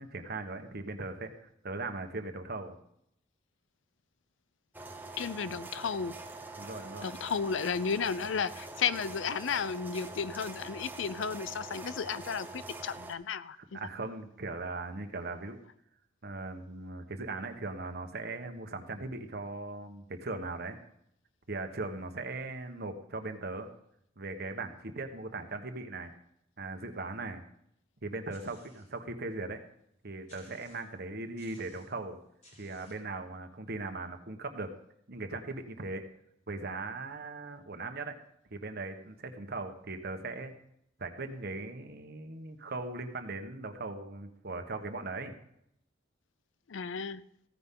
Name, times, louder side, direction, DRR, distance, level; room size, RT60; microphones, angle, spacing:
voice 1, 0.0-2.7 6.6-7.1 13.7-15.6 16.2-20.8 21.5-23.7 24.2-26.1 26.6-27.4 28.0-29.6 30.0-32.2 32.6-34.7 35.1-36.0 36.5-38.2 38.5-40.5 41.0-45.3, right 3 dB, 55° right, 6 dB, 1.2 m, -39 dB
sound 1, 4.7-13.1, right 2 dB, 10° right, 1.0 m, -44 dB
voice 2, 5.2-6.1 7.0-13.8 46.7-47.2, left 6 dB, 70° left, 17 dB, 0.5 m, -33 dB
sound 2, 28.3-29.0 29.5-29.6 30.3-31.0 31.4-32.0 32.4-33.1, left 1 dB, 40° left, 4.9 m, -60 dB
15.5 x 9.9 x 3.7 m, 0.75 s
head